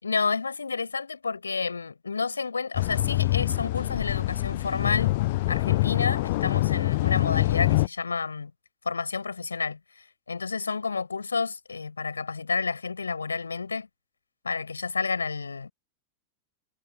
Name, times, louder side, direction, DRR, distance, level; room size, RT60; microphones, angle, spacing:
voice 1, 0.0-5.1 5.5-8.5 8.9-13.9 14.4-15.7, left 4 dB, 75° left, 7.2 m, -30 dB
sound 1, 2.7-7.9, left 19 dB, 50° left, 0.4 m, -25 dB
figure-of-eight pair, 90°, 0 cm